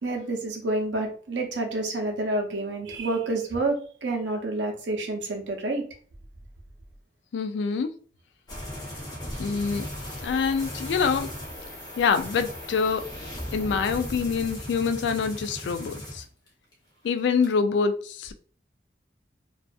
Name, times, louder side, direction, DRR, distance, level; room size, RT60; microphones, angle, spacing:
voice 1, 0.0-5.8, right 2 dB, 85° right, 0.6 m, -28 dB
voice 2, 7.3-7.9 9.4-9.9 10.2-11.3 12.0-13.0 13.5-16.2 17.0-18.3, left 5 dB, 80° left, 0.3 m, -25 dB
sound 1, 8.5-16.7 17.0-17.5, equal, 25° left, 0.7 m, -37 dB
2.5 x 2.3 x 2.3 m
head